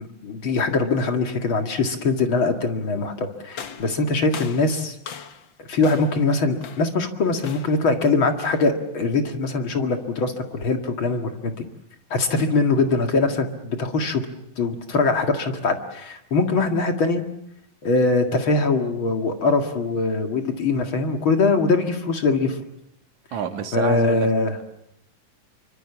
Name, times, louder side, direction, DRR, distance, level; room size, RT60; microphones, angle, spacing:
voice 1, 0.0-5.2 5.6-11.6 12.1-14.3 14.6-17.2 17.8-22.6 23.7-24.6, left 3 dB, 40° left, 5 dB, 2.3 m, -22 dB
sound 1, 3.5-5.5 5.8-6.2 6.6-7.0 7.4-7.9 8.4-8.8, left 7 dB, 65° left, 1.1 m, -39 dB
voice 2, 23.3-24.3, right 8 dB, 60° right, 7 dB, 2.7 m, -28 dB
27.5 x 24.5 x 7.2 m, 0.79 s
omnidirectional pair, 4.1 m